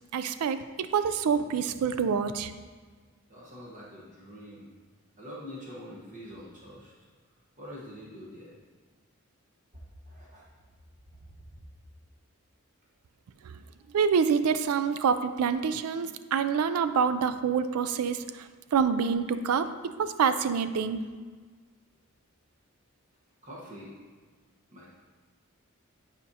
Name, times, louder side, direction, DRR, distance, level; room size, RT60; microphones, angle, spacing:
voice 1, 0.1-0.6 0.9-2.5 13.4-13.5 13.9-21.0, right 6 dB, 85° right, 11 dB, 0.4 m, -27 dB
voice 2, 3.3-4.8 5.2-6.9 7.6-8.6 10.1-10.4 11.2-11.6 23.4-23.9 24.7-24.9, equal, 35° right, -5 dB, 1.2 m, -45 dB
9.6 x 5.1 x 2.8 m, 1.5 s
head